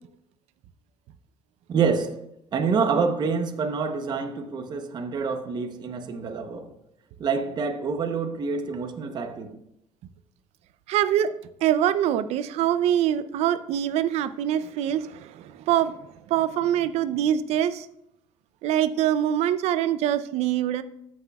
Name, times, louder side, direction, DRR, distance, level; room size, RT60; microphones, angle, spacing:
voice 1, 1.7-2.2 2.5-6.7 7.2-9.6, right 5 dB, 40° right, 0.8 m, -27 dB
voice 2, 10.9-11.3 11.6-16.0 16.3-17.9 18.6-20.8, right 11 dB, 70° right, 0.5 m, -24 dB
14.0 x 6.2 x 2.3 m
cardioid pair, 125°, 12 cm